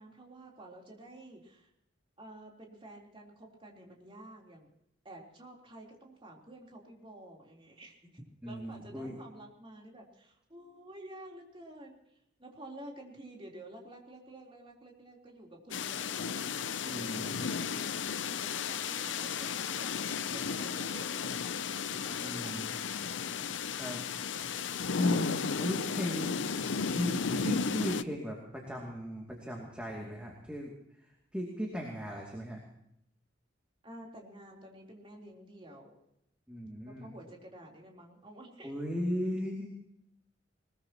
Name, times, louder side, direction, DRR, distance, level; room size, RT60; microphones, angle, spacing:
voice 1, 0.0-1.7 2.2-4.7 5.0-12.0 12.4-16.4 16.8-17.7 18.3-21.4 22.0-22.7 33.8-36.0 36.9-38.7, right 1 dB, 30° right, -1 dB, 3.7 m, -50 dB
voice 2, 8.4-9.2 16.8-17.4 22.2-22.7 23.7-24.0 24.8-26.4 26.9-30.7 31.3-32.6 36.5-37.1 38.6-39.7, equal, 5° right, -1 dB, 2.6 m, -36 dB
sound 1, 15.7-28.0, left 6 dB, 80° left, 0.7 m, -34 dB
21.5 x 21.0 x 3.0 m, 0.78 s
head